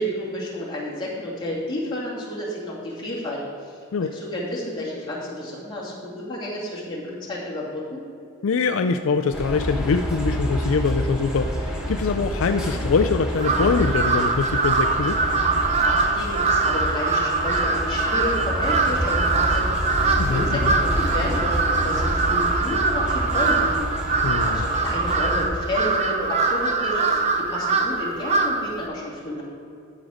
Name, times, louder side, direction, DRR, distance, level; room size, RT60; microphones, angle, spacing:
voice 1, 0.0-8.0 15.7-29.4, left 1 dB, 20° left, -6 dB, 2.3 m, -31 dB
voice 2, 8.4-15.2 20.2-20.7 24.2-24.7, left 4 dB, 70° left, 7 dB, 0.4 m, -23 dB
sound 1, 9.3-25.4, equal, 5° right, 1.4 m, -28 dB
Crow, 13.4-28.8, right 4 dB, 30° right, 0.7 m, -23 dB
12.0 x 6.2 x 5.0 m, 2.6 s
head